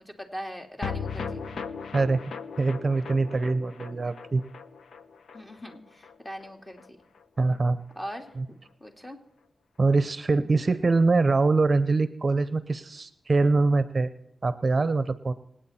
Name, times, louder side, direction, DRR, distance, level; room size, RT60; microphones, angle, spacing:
voice 1, 0.0-1.4 5.3-6.8 8.0-9.2, equal, 15° left, 3 dB, 2.5 m, -40 dB
sound 1, 0.8-7.3 7.5-7.6 7.9-8.0, left 5 dB, 80° left, 0.9 m, -38 dB
voice 2, 2.6-4.4 7.4-7.8 8.4-8.5 9.8-14.1 14.4-15.3, right 3 dB, 45° right, 14 dB, 0.7 m, -23 dB
26.0 x 9.1 x 4.3 m, 0.82 s
cardioid pair, 75°, 0 cm